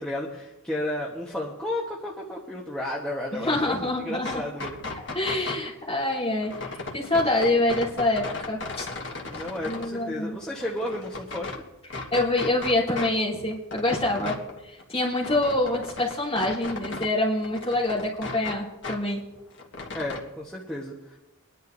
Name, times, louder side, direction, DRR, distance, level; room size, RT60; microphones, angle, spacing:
voice 1, 0.0-4.8 9.3-11.6 19.9-21.2, left 1 dB, 5° left, -5 dB, 1.2 m, -33 dB
voice 2, 3.3-4.3 4.9-8.9 9.6-10.4 12.1-14.4 14.7-19.2, left 2 dB, 25° left, -7 dB, 3.5 m, -26 dB
sound 1, 4.1-5.7 6.4-9.9 10.3-11.6 11.9-13.1 13.4-17.1 17.4-19.0 19.3-20.2, left 3 dB, 55° left, 1.5 m, -36 dB
24.5 x 10.5 x 2.7 m, 1.0 s
head